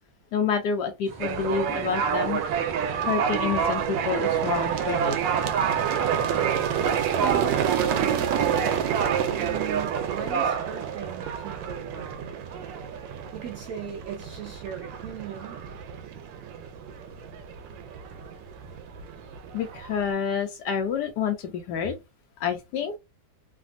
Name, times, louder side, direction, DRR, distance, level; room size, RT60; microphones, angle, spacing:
voice 1, 0.3-2.4 3.1-5.2 19.5-21.9 22.4-22.9, left 6 dB, 75° left, 1.1 m, -28 dB
sound 1, 1.0-8.4, right 3 dB, 40° right, 0.7 m, -45 dB
sound 2, 1.2-20.1, right 8 dB, 90° right, 1.3 m, -27 dB
voice 2, 7.1-9.0 9.3-12.4 13.3-15.6, right 8 dB, 70° right, 0.8 m, -38 dB
3.3 x 2.3 x 2.5 m
omnidirectional pair, 1.9 m